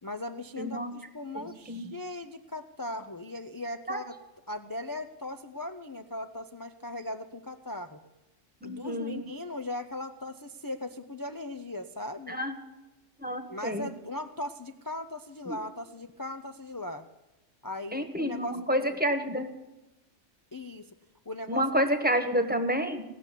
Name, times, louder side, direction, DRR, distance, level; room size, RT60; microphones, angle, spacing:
voice 1, 0.0-4.1 4.5-8.0 8.6-12.4 13.5-17.1 17.6-19.0 20.5-20.9 21.3-21.7, left 1 dB, 35° left, 7 dB, 0.3 m, -38 dB
voice 2, 0.6-0.9 1.3-1.9 3.9-4.0 8.6-9.2 12.3-12.6 13.2-13.9 15.5-15.6 17.9-19.5 21.5-23.0, equal, 10° right, 7 dB, 1.2 m, -29 dB
17.5 x 6.7 x 9.9 m, 1.0 s
omnidirectional pair, 1.3 m